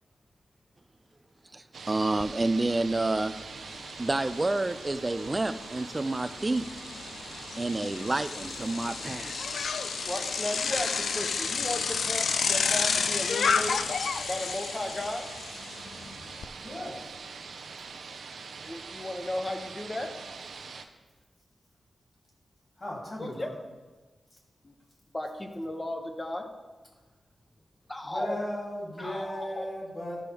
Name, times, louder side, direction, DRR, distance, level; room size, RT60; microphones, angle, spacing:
voice 1, 1.5-3.4 4.0-6.7 7.6-9.3, right 2 dB, 20° right, 11 dB, 0.3 m, -29 dB
sound 1, 1.7-20.9, right 5 dB, 85° right, 0.6 m, -43 dB
Bicycle, 2.2-2.3 2.7-16.5, left 5 dB, 90° left, 0.3 m, -31 dB
voice 2, 10.1-13.8 14.3-15.3 18.6-20.1 23.2-23.5 24.6-24.7 25.1-26.5 27.9-28.4 29.0-29.7, left 1 dB, 20° left, 5 dB, 0.9 m, -35 dB
voice 3, 16.6-17.1 22.8-23.5 28.0-30.2, equal, 35° left, -4 dB, 2.9 m, -36 dB
13.0 x 6.1 x 3.5 m, 1.3 s
wide cardioid pair, 155°, 0 cm